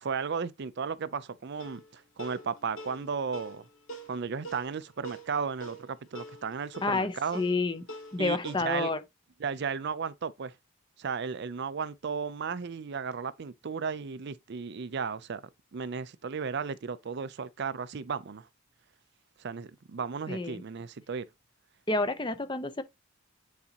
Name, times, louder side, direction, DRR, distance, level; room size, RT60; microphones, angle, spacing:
voice 1, 0.0-3.6 4.1-7.4 8.2-8.9 9.4-10.5 11.0-15.4 15.7-18.5 19.4-21.3, right 5 dB, 50° right, 0.4 m, -34 dB
sound 1, 1.6-8.6, right 1 dB, 70° left, 2.7 m, -46 dB
voice 2, 6.8-7.8 8.1-9.0 20.3-20.6 21.9-22.8, left 3 dB, 20° left, 0.7 m, -29 dB
9.5 x 4.1 x 2.8 m
head